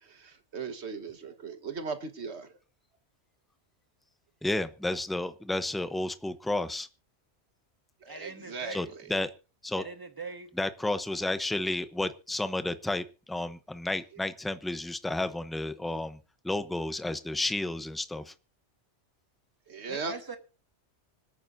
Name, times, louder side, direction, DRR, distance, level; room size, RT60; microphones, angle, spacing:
voice 1, 0.0-2.5 8.0-9.1 19.7-20.1, right 5 dB, 70° right, 1.7 m, -38 dB
voice 2, 4.4-6.9 8.7-9.3 9.6-9.8 10.6-16.2 16.4-18.3, left 2 dB, ahead, 0.6 m, -32 dB
voice 3, 8.1-8.9 9.7-10.5 19.9-20.4, right 3 dB, 20° right, 1.5 m, -41 dB
26.0 x 9.1 x 2.7 m
omnidirectional pair, 1.2 m